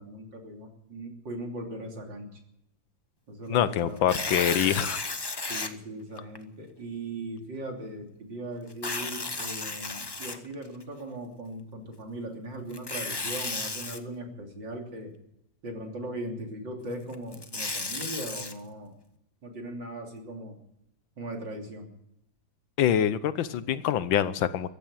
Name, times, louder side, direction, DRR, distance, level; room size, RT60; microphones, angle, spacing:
voice 1, 0.0-2.4 3.3-4.2 5.5-15.1 15.6-18.9 19.4-20.6 21.2-21.9, right 1 dB, 70° right, 2 dB, 3.8 m, -39 dB
voice 2, 3.5-5.0 22.8-24.7, left 10 dB, 90° left, 14 dB, 1.6 m, -25 dB
Tearing, 4.0-5.7 6.3-6.4 8.7-10.8 12.7-14.0 17.1-18.5, left 3 dB, 25° left, 0.5 m, -33 dB
15.0 x 10.5 x 8.8 m, 0.80 s
omnidirectional pair, 2.0 m